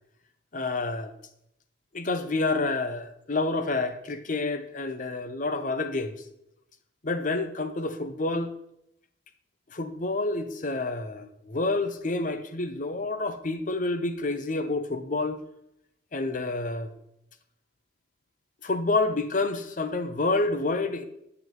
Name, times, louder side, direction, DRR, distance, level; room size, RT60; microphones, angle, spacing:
voice 1, 0.5-1.1 1.9-6.2 7.0-8.5 9.7-15.4 16.1-16.9 18.6-21.0, left 3 dB, 40° left, 0.7 m, -28 dB
9.3 x 5.9 x 4.7 m
head